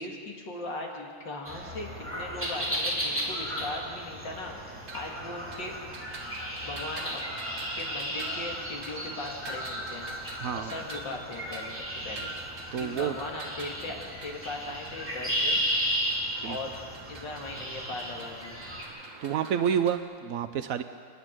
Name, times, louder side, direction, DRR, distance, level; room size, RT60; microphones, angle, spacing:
voice 1, 0.0-4.5 4.9-5.7 6.6-7.2 7.7-10.1 10.5-11.8 12.0-12.3 12.8-15.6 16.4-16.7 17.1-18.6, left 2 dB, 60° left, 0 dB, 2.9 m, -38 dB
high park birds, 1.5-18.8, equal, 5° right, 3.6 m, -34 dB
sound 1, 4.3-20.0, right 3 dB, 40° right, 1.9 m, -45 dB
voice 2, 10.4-10.7 12.7-13.2 16.4-16.6 19.2-20.8, right 8 dB, 85° right, 10 dB, 0.7 m, -29 dB
30.0 x 10.0 x 9.2 m, 2.1 s
omnidirectional pair, 2.3 m